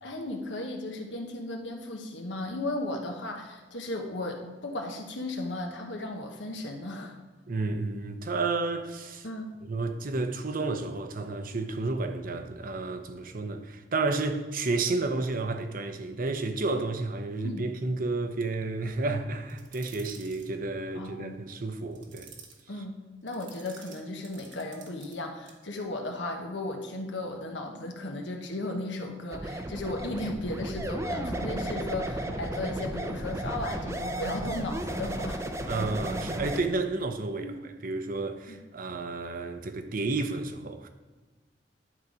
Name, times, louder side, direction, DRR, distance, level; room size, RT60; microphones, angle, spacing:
voice 1, 0.0-7.1 9.2-9.5 17.4-17.7 20.9-21.4 22.7-23.0 23.2-35.4 37.4-37.6 38.5-38.6, left 2 dB, 85° left, 1.2 m, -35 dB
voice 2, 7.5-9.3 9.6-22.3 35.7-40.9, right 3 dB, 50° right, 0.7 m, -31 dB
sound 1, 19.5-20.5 21.9-22.6 23.3-25.2 25.5-25.6, right 6 dB, 90° right, 1.3 m, -51 dB
sound 2, 29.3-36.6, right 1 dB, 15° right, 0.5 m, -34 dB
11.0 x 4.0 x 4.8 m
head